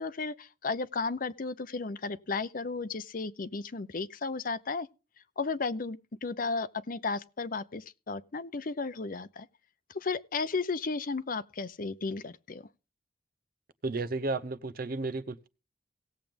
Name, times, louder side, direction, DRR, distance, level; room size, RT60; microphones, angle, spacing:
voice 1, 0.0-4.9 5.4-9.5 9.9-12.6, left 4 dB, 50° left, 0.7 m, -34 dB
voice 2, 13.8-15.5, right 3 dB, 55° right, 0.8 m, -33 dB
18.0 x 7.5 x 3.4 m
head